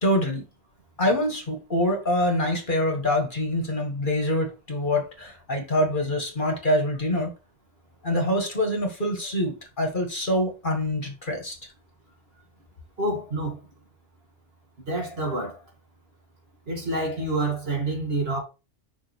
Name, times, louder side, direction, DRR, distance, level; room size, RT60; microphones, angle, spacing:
voice 1, 0.0-0.4 1.0-7.3 8.0-11.6, left 1 dB, 45° left, 2.0 m, -25 dB
voice 2, 13.0-13.6 14.9-15.6 16.7-18.4, right 2 dB, 60° right, 2.4 m, -27 dB
6.0 x 5.1 x 4.5 m
omnidirectional pair, 1.2 m